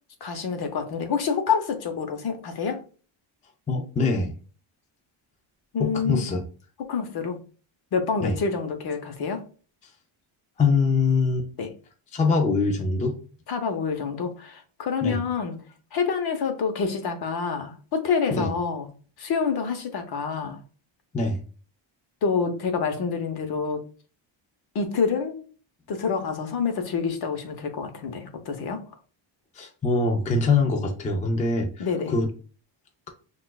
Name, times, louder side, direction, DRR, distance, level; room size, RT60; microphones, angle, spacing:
voice 1, 0.2-2.8 5.7-6.3 6.9-7.4 7.9-9.4 11.6-11.7 13.5-15.6 15.9-18.9 19.2-20.6 22.2-23.8 24.7-25.4 25.9-28.8 31.8-32.1, left 5 dB, 50° left, 6 dB, 0.9 m, -27 dB
voice 2, 3.7-4.3 5.8-6.5 8.2-8.4 10.6-11.5 12.1-13.2 15.0-15.2 18.3-18.5 21.1-21.4 29.5-32.3, left 3 dB, 15° left, 3 dB, 0.4 m, -23 dB
5.9 x 2.5 x 2.3 m, 0.38 s
cardioid pair, 140°, 48 cm